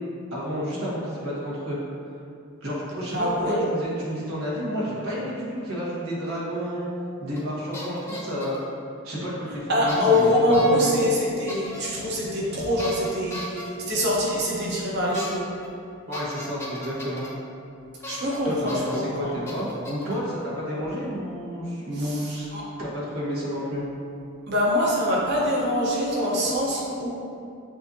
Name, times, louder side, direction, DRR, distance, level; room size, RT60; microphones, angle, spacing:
voice 1, 0.3-1.8 2.6-6.9 7.2-8.6 9.0-10.4 10.7-11.0 16.1-17.3 18.4-22.5 22.8-23.8, equal, 85° right, -7 dB, 1.3 m, -30 dB
voice 2, 3.1-3.7 9.7-15.5 18.1-19.4 22.0-22.6 24.5-27.1, left 1 dB, 55° right, -5 dB, 0.9 m, -24 dB
sound 1, 7.3-7.5 7.7-8.6 9.9-10.2 10.5-10.9 11.5-11.8 12.8-13.6 15.1-15.3 15.6-15.7 16.1-17.3 18.0-18.4 18.7-19.0 19.5-20.1, left 1 dB, 15° left, 0.6 m, -37 dB
7.6 x 2.6 x 2.7 m, 2.5 s
head